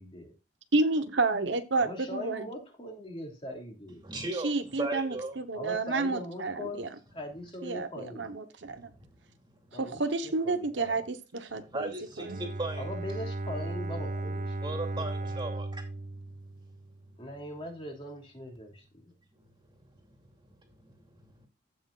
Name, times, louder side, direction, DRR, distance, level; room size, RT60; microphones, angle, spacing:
voice 1, 0.7-2.5 4.4-6.9 7.6-8.9 9.7-11.9 12.3-12.4, right 3 dB, 70° right, 1.0 m, -30 dB
voice 2, 1.8-4.0 5.5-8.3 9.7-11.0 12.8-15.3 17.2-19.1, left 1 dB, 30° left, 2.9 m, -41 dB
voice 3, 3.9-5.7 8.6-9.7 11.5-12.8 14.6-16.5 17.0-17.1 19.3-21.5, right 2 dB, 25° right, 2.6 m, -39 dB
Bowed string instrument, 12.2-17.2, right 2 dB, 40° right, 0.5 m, -36 dB
15.5 x 6.1 x 2.4 m
head